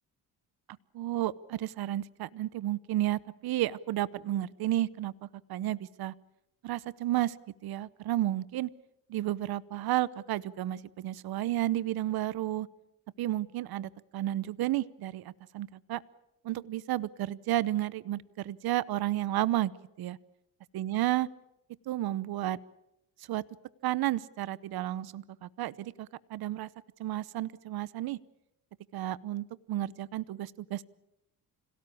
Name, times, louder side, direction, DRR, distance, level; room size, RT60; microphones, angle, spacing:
voice 1, 0.9-5.1 5.5-6.1 6.6-7.4 7.6-8.7 9.1-12.7 13.2-16.0 16.4-19.7 20.0-20.2 20.7-21.3 21.9-22.6 23.3-23.4 23.8-26.7 27.0-28.2 28.9-30.8, right 14 dB, 65° right, 19 dB, 0.9 m, -32 dB
26.5 x 17.5 x 8.6 m, 0.86 s
cardioid pair, 85°, 39 cm